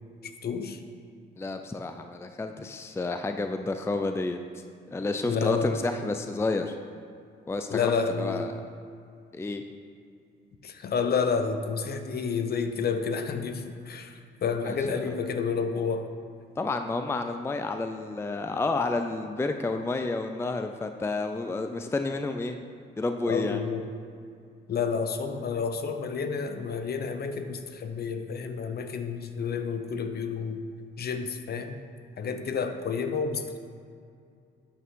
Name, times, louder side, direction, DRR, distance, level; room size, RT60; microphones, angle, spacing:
voice 1, 0.4-0.8 5.2-5.8 7.7-8.5 10.6-16.1 23.3-23.9 24.7-30.6 31.0-31.8 32.2-33.6, left 5 dB, 50° left, 8 dB, 0.8 m, -30 dB
voice 2, 1.4-4.4 4.9-6.8 7.5-8.5 9.3-9.6 14.6-15.0 16.6-22.6 23.0-23.6, left 3 dB, 10° left, 7 dB, 0.4 m, -30 dB
8.5 x 8.2 x 3.7 m, 2.3 s
cardioid pair, 80°, 21 cm